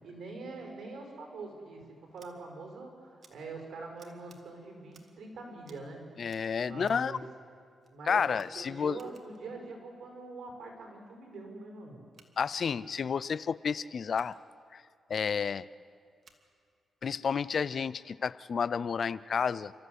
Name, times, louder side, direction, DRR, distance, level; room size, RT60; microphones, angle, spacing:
voice 1, 0.0-1.8 2.1-6.2 6.5-7.2 7.9-8.2 8.5-12.0, right 3 dB, 70° right, 2 dB, 5.7 m, -44 dB
Scissors, 2.1-2.3 3.2-3.3 4.0-4.4 4.9-5.2 5.6-5.9 6.2-7.1 7.8-7.9 8.3-9.4 12.1-12.3 14.1-14.4 16.2-16.4, right 4 dB, 50° right, 2.1 m, -62 dB
voice 2, 6.2-7.2 8.1-9.0 12.4-14.3 14.7-14.8 15.1-15.7 17.0-19.7, left 6 dB, 55° left, 18 dB, 0.5 m, -31 dB
29.5 x 14.0 x 8.2 m, 2.3 s
cardioid pair, 105°, 0 cm